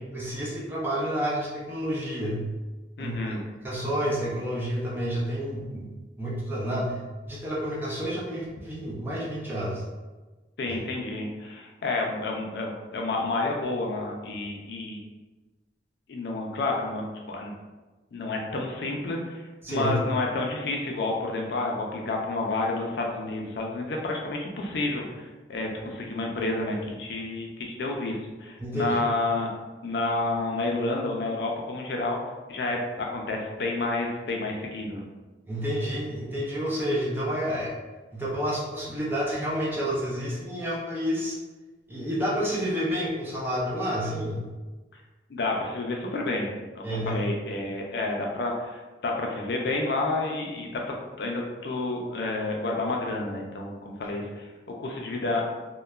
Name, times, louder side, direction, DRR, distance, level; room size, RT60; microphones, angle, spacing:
voice 1, 0.1-2.4 3.0-3.3 3.6-5.9 6.2-7.0 7.3-9.8 10.7-10.8 19.6-20.0 28.6-29.0 35.5-37.7 38.1-41.4 41.9-44.5 46.8-47.2, equal, 10° right, -5 dB, 0.5 m, -29 dB
voice 2, 3.0-3.4 10.6-15.0 16.1-17.5 18.1-19.4 19.7-29.5 29.8-32.2 32.5-35.0 45.3-54.5 54.8-55.4, left 2 dB, 70° left, 0 dB, 0.4 m, -30 dB
2.9 x 2.1 x 2.3 m, 1.2 s
head